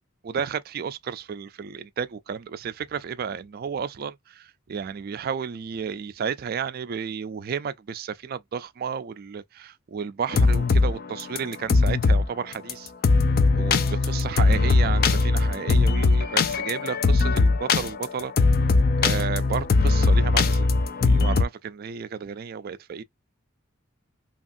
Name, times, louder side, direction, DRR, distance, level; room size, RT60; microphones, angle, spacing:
voice 1, 0.2-12.9 13.5-13.8 14.0-18.3 19.0-20.7 21.0-23.0, right 6 dB, 45° right, 0.3 m, -32 dB
sound 1, 10.3-10.9 11.2-12.3 12.5-12.7 13.0-21.4, left 3 dB, 45° left, 0.4 m, -20 dB
2.9 x 2.5 x 2.5 m
head